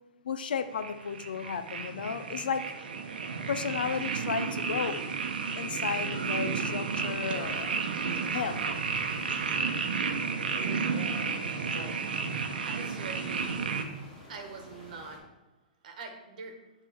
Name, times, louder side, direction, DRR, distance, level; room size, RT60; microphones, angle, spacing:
voice 1, 0.2-2.6 3.5-5.0 5.6-7.7 8.2-8.8, left 6 dB, 85° left, 10 dB, 0.5 m, -33 dB
sound 1, 0.8-13.8, right 5 dB, 85° right, 0.7 m, -32 dB
sound 2, 6.9-15.2, left 1 dB, 25° left, 1.9 m, -49 dB
voice 2, 12.6-13.5 14.3-15.2 15.8-16.6, right 4 dB, 60° right, 4 dB, 1.2 m, -43 dB
8.0 x 3.3 x 4.4 m, 1.1 s
hypercardioid pair, 155°, 5 cm